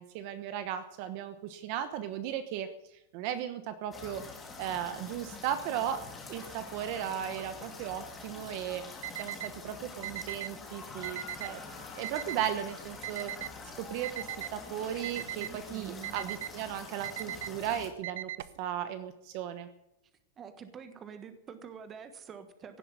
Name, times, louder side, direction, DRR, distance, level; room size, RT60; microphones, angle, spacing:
voice 1, 0.0-2.7 3.1-4.2 4.6-6.0 6.3-8.8 9.2-11.6 12.0-13.3 13.8-18.3 18.6-19.7, right 10 dB, 40° right, 11 dB, 1.1 m, -36 dB
sound 1, 3.9-17.9, left 4 dB, 10° left, 2.2 m, -46 dB
Alarm, 9.0-9.5 10.0-10.5 11.0-11.5 12.0-12.5 13.0-13.5 14.0-14.5 15.0-15.5 16.0-16.5 17.0-17.5 18.0-18.6, right 13 dB, 60° right, 0.7 m, -38 dB
voice 2, 15.4-16.1 20.4-22.8, right 7 dB, 15° right, 9 dB, 1.3 m, -46 dB
16.5 x 7.8 x 9.7 m, 0.88 s
supercardioid pair, 175°, 0 cm